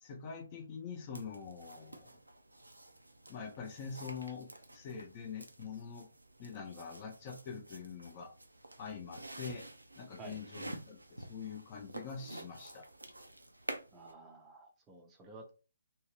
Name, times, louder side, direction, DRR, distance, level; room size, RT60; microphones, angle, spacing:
voice 1, 0.0-2.1 3.3-6.1 6.4-8.3 8.8-9.6 10.0-12.9, left 6 dB, 30° left, 0.5 m, -45 dB
sound 1, 1.1-14.1, right 1 dB, 85° right, 0.4 m, -50 dB
voice 2, 13.9-15.5, right 2 dB, 15° right, 0.5 m, -52 dB
2.6 x 2.0 x 3.1 m
figure-of-eight pair, 135°, 0 cm